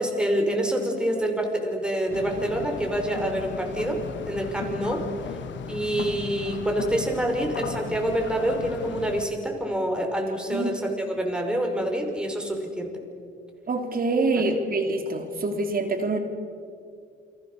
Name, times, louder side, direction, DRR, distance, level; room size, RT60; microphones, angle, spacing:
voice 1, 0.0-5.1 5.7-12.9 14.5-14.6, right 1 dB, 5° right, 2 dB, 5.6 m, -27 dB
sound 1, 2.1-9.3, left 7 dB, 70° left, 1.5 m, -36 dB
voice 2, 13.7-16.2, right 3 dB, 45° right, 4 dB, 3.7 m, -25 dB
30.0 x 23.0 x 7.0 m, 2.4 s
cardioid pair, 90°, 20 cm